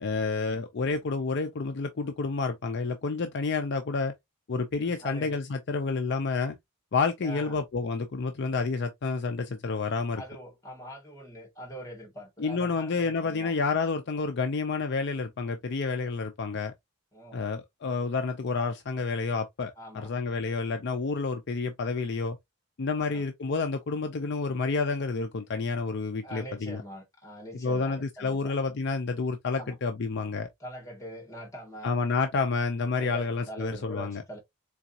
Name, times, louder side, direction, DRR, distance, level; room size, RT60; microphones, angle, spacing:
voice 1, 0.0-4.1 4.5-6.6 6.9-10.2 12.4-16.7 17.3-22.4 22.8-26.8 27.5-30.5 31.8-34.2, left 4 dB, 50° left, 0.5 m, -29 dB
voice 2, 4.9-5.4 7.2-7.6 10.2-13.5 17.1-17.4 19.8-20.1 23.0-23.2 26.2-28.5 29.6-29.8 30.6-31.9 33.0-34.4, equal, 15° left, 2.0 m, -43 dB
3.9 x 3.6 x 2.7 m
head